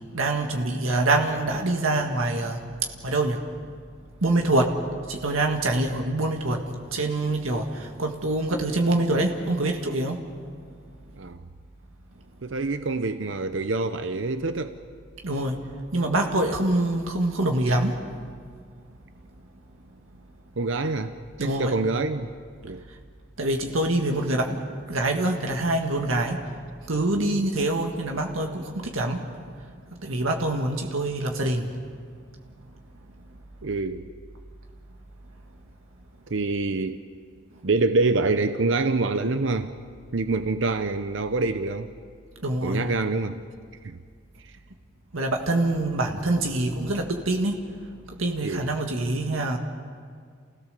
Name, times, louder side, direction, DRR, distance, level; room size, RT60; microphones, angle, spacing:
voice 1, 0.1-2.6 3.0-3.4 4.2-4.7 5.1-6.6 6.9-10.2 15.2-15.6 15.9-18.0 21.4-21.8 23.4-24.6 24.9-26.4 26.9-29.2 30.0-31.7 42.4-42.8 45.1-47.6 48.2-49.6, right 2 dB, 85° right, 3 dB, 1.7 m, -25 dB
voice 2, 11.2-11.5 12.4-14.8 20.6-21.1 21.4-22.3 22.6-22.8 27.2-27.3 33.6-34.0 36.3-37.0 37.6-39.7 40.1-41.9 42.6-43.4 43.8-44.0 44.4-44.5 48.4-48.7, right 3 dB, 65° right, 9 dB, 0.7 m, -26 dB
28.5 x 16.5 x 6.8 m, 2.1 s
head